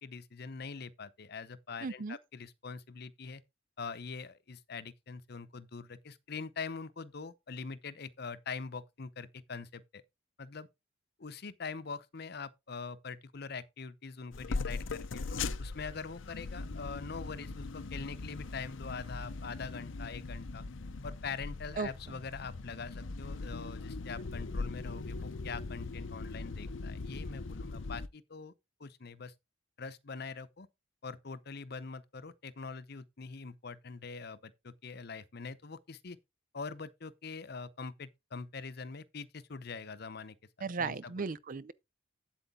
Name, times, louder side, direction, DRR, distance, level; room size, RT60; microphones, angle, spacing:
voice 1, 0.0-3.4 3.8-10.0 10.4-10.7 11.2-20.7 21.0-28.5 28.8-29.3 29.8-30.7 31.0-36.2 36.5-40.4 40.8-41.2, left 5 dB, 55° left, 0.8 m, -43 dB
voice 2, 1.8-2.2 21.8-22.2 40.6-41.7, right 4 dB, 45° right, 0.5 m, -36 dB
sound 1, 14.3-28.1, left 3 dB, 90° left, 0.7 m, -40 dB
8.2 x 8.0 x 3.7 m
head